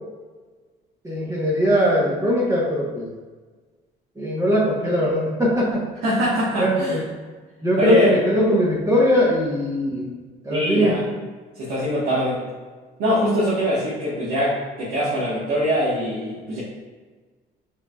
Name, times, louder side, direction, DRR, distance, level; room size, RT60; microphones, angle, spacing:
voice 1, 1.0-3.1 4.2-5.9 6.6-7.0 7.6-10.1 10.4-11.0, equal, 20° right, -5 dB, 0.9 m, -20 dB
voice 2, 6.0-7.0 7.8-8.2 10.5-11.0 11.6-12.4 13.0-16.6, equal, 75° right, -8 dB, 1.2 m, -23 dB
5.6 x 3.2 x 2.3 m, 1.4 s
cardioid pair, 110°, 17 cm